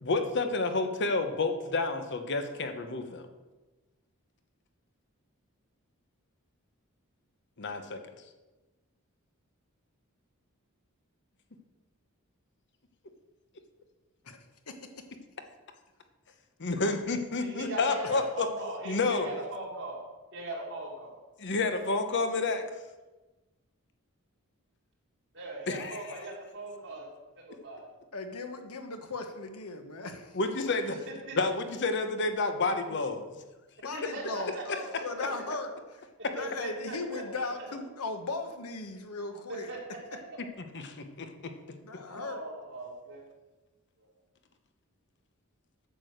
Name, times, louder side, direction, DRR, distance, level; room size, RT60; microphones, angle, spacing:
voice 1, 0.0-3.3 7.6-8.0 16.6-18.5 18.9-19.3 21.4-22.7 25.7-26.1 30.3-31.1 31.4-33.3 34.7-34.8 40.7-41.5, left 3 dB, 55° left, 7 dB, 0.9 m, -30 dB
voice 2, 14.7-15.0 28.1-30.4 33.8-35.7 36.3-39.7 41.8-42.4, left 3 dB, 85° left, 6 dB, 1.2 m, -37 dB
voice 3, 17.4-20.0 20.3-21.2 25.3-27.1 27.3-27.9 31.1-31.4 32.9-33.0 33.9-34.8 35.1-35.4 36.4-37.4 39.5-39.8 42.1-43.3, right 2 dB, 55° right, -3 dB, 3.3 m, -40 dB
8.9 x 6.9 x 6.5 m, 1.2 s
head